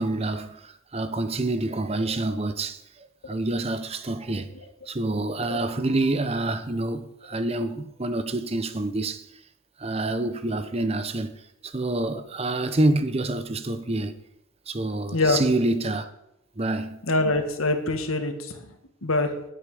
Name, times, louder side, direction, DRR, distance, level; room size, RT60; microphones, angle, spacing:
voice 1, 0.0-4.5 4.9-9.2 9.8-14.2 14.7-16.1 16.6-17.0, right 2 dB, 30° right, 0.8 m, -27 dB
voice 2, 17.1-18.6 19.0-19.3, left 2 dB, 85° left, 1.9 m, -24 dB
19.5 x 8.7 x 5.0 m
head